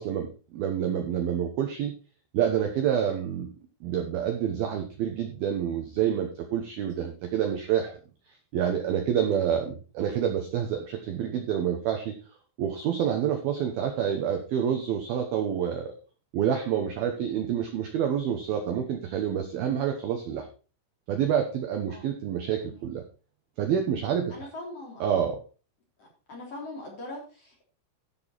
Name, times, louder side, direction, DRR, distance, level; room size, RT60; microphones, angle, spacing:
voice 1, 0.0-2.0 2.3-3.6 3.8-8.0 8.5-12.2 12.6-15.9 16.3-20.5 21.1-23.0 23.6-24.4 25.0-25.4, right 9 dB, 70° right, 5 dB, 2.3 m, -28 dB
voice 2, 24.3-25.1 26.0-27.6, left 2 dB, 35° left, -1 dB, 3.8 m, -41 dB
13.5 x 6.2 x 4.6 m, 0.34 s
omnidirectional pair, 5.7 m